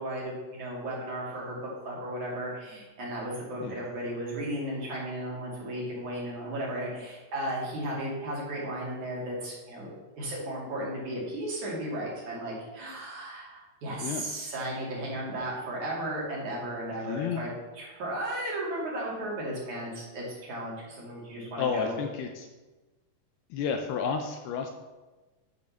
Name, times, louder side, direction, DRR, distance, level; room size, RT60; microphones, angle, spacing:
voice 1, 0.0-9.9 10.2-17.5 17.7-21.9, right 1 dB, 50° right, -4 dB, 3.4 m, -35 dB
voice 2, 17.0-17.4 21.6-22.5 23.5-24.7, left 6 dB, 80° left, 5 dB, 2.4 m, -31 dB
9.1 x 5.4 x 6.9 m, 1.2 s
omnidirectional pair, 4.9 m